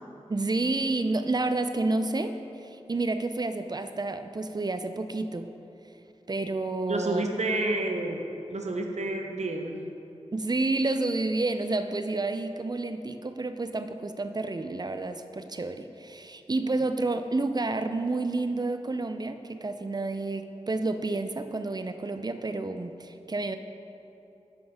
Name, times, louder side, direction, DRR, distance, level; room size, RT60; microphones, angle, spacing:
voice 1, 0.3-5.5 6.3-7.3 10.3-23.6, right 2 dB, 35° right, 9 dB, 0.4 m, -30 dB
voice 2, 6.9-9.9, right 2 dB, 70° right, 3 dB, 0.7 m, -30 dB
6.1 x 5.8 x 5.0 m, 2.9 s
wide cardioid pair, 45°, 12 cm